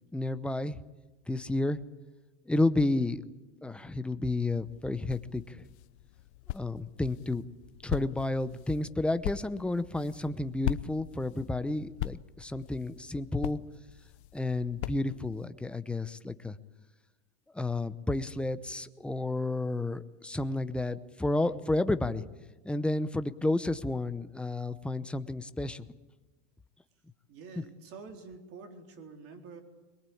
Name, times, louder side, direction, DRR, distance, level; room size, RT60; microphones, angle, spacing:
voice 1, 0.1-0.8 1.3-1.8 2.5-3.2 3.6-5.6 6.5-7.4 7.8-13.6 14.3-16.6 17.5-22.2 22.6-25.9, left 2 dB, 5° left, 11 dB, 0.7 m, -31 dB
sound 1, 4.5-15.5, left 17 dB, 75° left, 0.9 m, -41 dB
voice 2, 27.3-29.6, right 4 dB, 45° right, 4 dB, 3.9 m, -47 dB
22.5 x 21.5 x 8.6 m, 1.1 s
supercardioid pair, 140°, 33 cm